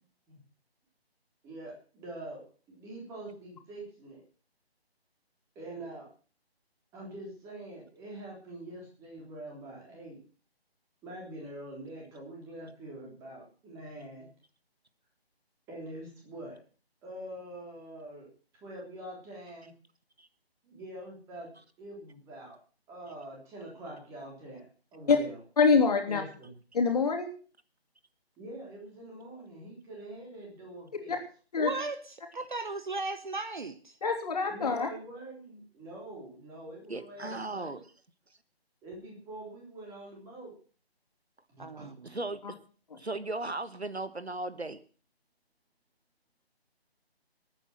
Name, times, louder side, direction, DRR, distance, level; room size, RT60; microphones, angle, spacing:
voice 1, 1.4-2.4 2.7-4.2 5.6-6.1 6.9-10.2 11.0-14.3 15.7-16.6 17.0-18.3 18.6-19.7 20.6-21.5 21.8-22.6 22.9-25.4 26.1-26.5 28.4-31.2 34.5-37.8 38.8-40.5 41.5-41.8, right 1 dB, 10° right, 3.6 m, -44 dB
voice 2, 25.6-26.2 26.7-27.3 31.1-31.2 31.5-31.7 34.0-34.9, left 5 dB, 40° left, 3.3 m, -25 dB
voice 3, 31.6-32.0 32.3-34.0 41.6-42.2, right 3 dB, 50° right, 1.1 m, -36 dB
voice 4, 36.9-37.8 42.0-42.6 42.9-44.8, right 2 dB, 80° right, 1.5 m, -36 dB
20.0 x 9.1 x 6.1 m
figure-of-eight pair, 150°, 32 cm